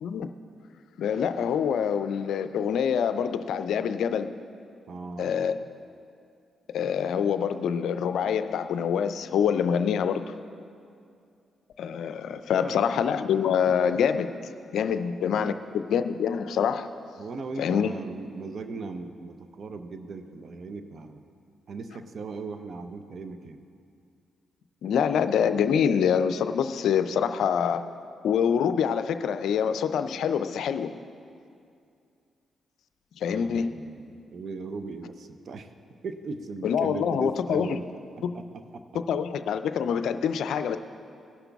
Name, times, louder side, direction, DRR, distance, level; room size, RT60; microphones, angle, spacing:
voice 1, 1.0-4.3 5.2-5.6 6.7-10.2 11.8-14.3 14.7-16.9 17.6-17.9 24.8-27.9 28.2-30.9 33.2-33.8 36.6-37.8 38.2-38.4 39.1-40.8, left 7 dB, 80° left, 10 dB, 0.4 m, -25 dB
voice 2, 4.9-5.3 12.3-12.8 14.9-15.6 17.2-21.2 21.7-23.6 33.3-35.7 36.0-37.9 38.2-38.4 38.7-38.8, right 4 dB, 60° right, 9 dB, 0.6 m, -38 dB
17.5 x 5.9 x 3.5 m, 2.4 s
supercardioid pair, 50°, 0 cm